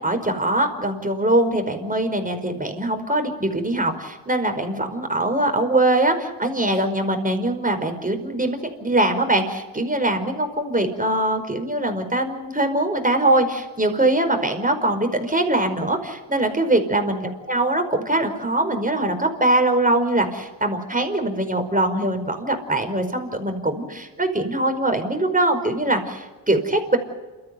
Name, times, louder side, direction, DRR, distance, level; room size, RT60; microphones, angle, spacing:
voice 1, 0.0-27.0, right 1 dB, 15° right, 6 dB, 5.0 m, -22 dB
29.0 x 14.0 x 9.2 m, 1.3 s
hypercardioid pair, 45°, 48 cm